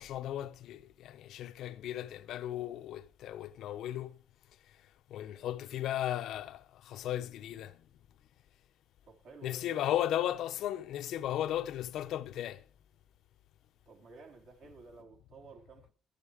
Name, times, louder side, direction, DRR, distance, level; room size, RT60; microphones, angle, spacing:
voice 1, 0.0-4.2 5.1-7.8 9.4-12.6, left 12 dB, 75° left, 0.7 m, -36 dB
voice 2, 9.0-9.9 10.2-10.4 13.9-15.9, right 5 dB, 65° right, 3.6 m, -53 dB
11.5 x 11.5 x 5.0 m
cardioid pair, 145°, 0 cm